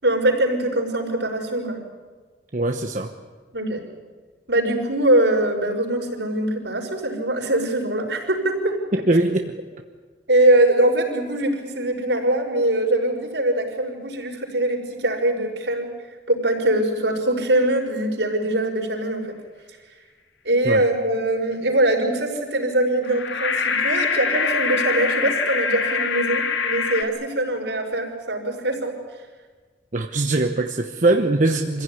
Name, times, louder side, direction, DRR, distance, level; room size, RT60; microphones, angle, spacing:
voice 1, 0.0-1.8 3.5-3.8 4.5-8.8 10.3-15.9 16.3-19.3 20.4-28.9, right 1 dB, 70° right, 0 dB, 5.5 m, -22 dB
voice 2, 2.5-3.1 8.9-9.6 20.6-20.8 29.9-31.8, right 2 dB, 45° right, 4 dB, 1.0 m, -21 dB
sound 1, 23.0-27.0, left 5 dB, 85° left, 2.0 m, -24 dB
26.0 x 16.0 x 9.9 m, 1.4 s
head